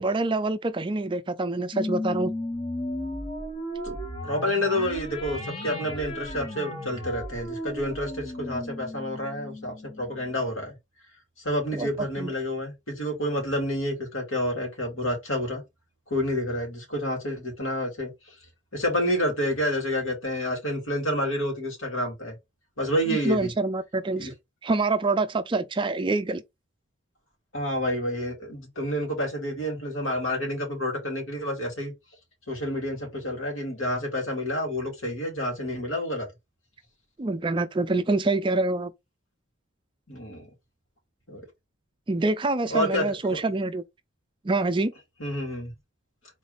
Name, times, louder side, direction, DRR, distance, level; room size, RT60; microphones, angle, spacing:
voice 1, 0.0-2.3 11.7-11.9 12.2-12.3 23.1-24.3 24.6-26.4 37.2-38.9 42.1-43.8 44.4-44.9, right 2 dB, 25° right, 0.4 m, -26 dB
sound 1, 1.7-10.5, left 1 dB, 25° left, 1.3 m, -35 dB
voice 2, 4.2-10.7 11.4-15.6 16.1-18.1 18.7-22.3 22.8-23.5 24.2-24.3 27.5-31.9 32.5-36.3 40.1-40.5 41.3-41.4 42.7-43.4 45.2-45.7, equal, 75° left, 2.7 m, -29 dB
3.9 x 3.3 x 4.0 m
head